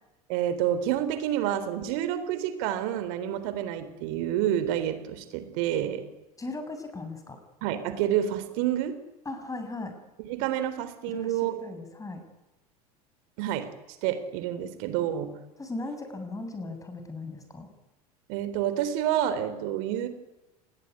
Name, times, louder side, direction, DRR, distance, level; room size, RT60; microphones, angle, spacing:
voice 1, 0.3-6.0 7.6-9.0 10.3-11.5 13.4-13.7 14.0-15.3 18.3-20.1, right 11 dB, 60° right, 11 dB, 3.6 m, -28 dB
voice 2, 6.4-7.4 9.3-10.0 11.1-12.2 15.6-17.7, left 2 dB, 15° left, 7 dB, 7.6 m, -37 dB
29.5 x 20.5 x 9.9 m, 1.0 s
hypercardioid pair, 75°, 19 cm